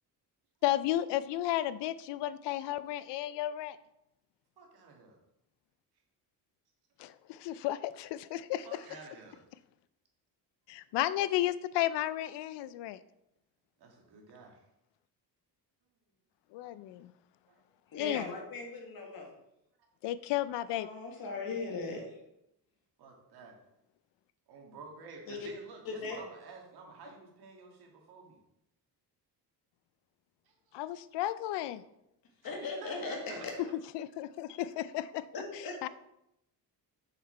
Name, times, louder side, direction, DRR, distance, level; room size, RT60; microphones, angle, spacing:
voice 1, 0.6-3.8 7.0-8.8 10.7-13.0 16.5-17.1 17.9-18.3 20.0-20.9 30.7-31.8 33.9-35.2 35.8-35.9, left 13 dB, 90° left, 15 dB, 0.5 m, -33 dB
voice 2, 4.6-5.2 8.6-9.4 13.8-14.7 17.5-17.6 23.0-23.6 24.5-28.4 30.4-30.8 32.4-33.7, right 4 dB, 65° right, 1 dB, 1.9 m, -51 dB
voice 3, 17.9-19.3 20.7-22.2 25.3-25.4 25.9-26.2 32.4-33.5 35.3-35.7, left 3 dB, 60° left, 2 dB, 1.8 m, -39 dB
6.5 x 5.9 x 4.3 m, 0.83 s
cardioid pair, 140°, 41 cm